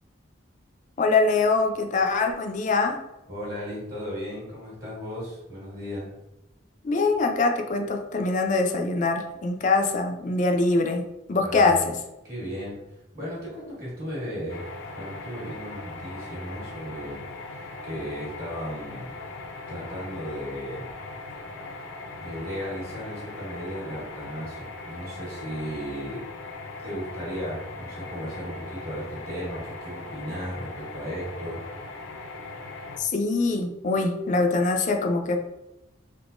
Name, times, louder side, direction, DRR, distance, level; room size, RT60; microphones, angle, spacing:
voice 1, 1.0-3.0 6.8-11.0 11.3-11.9 33.0-35.4, left 3 dB, 40° left, 4 dB, 0.4 m, -23 dB
voice 2, 3.3-6.1 11.4-11.7 12.2-12.8 13.1-14.6 14.9-17.2 17.5-19.2 19.7-20.9 22.2-26.2 26.8-31.6, equal, 50° right, -8 dB, 1.3 m, -35 dB
sound 1, 14.5-33.0, left 3 dB, 90° left, 0.6 m, -39 dB
3.5 x 2.9 x 2.5 m, 0.93 s
head